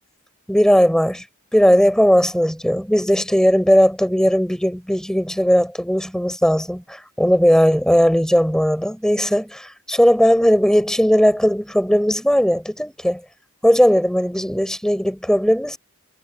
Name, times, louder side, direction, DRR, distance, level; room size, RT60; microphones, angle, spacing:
voice 1, 0.5-1.2 1.5-13.2 13.6-15.8, equal, 5° left, 6.5 m, -17 dB
head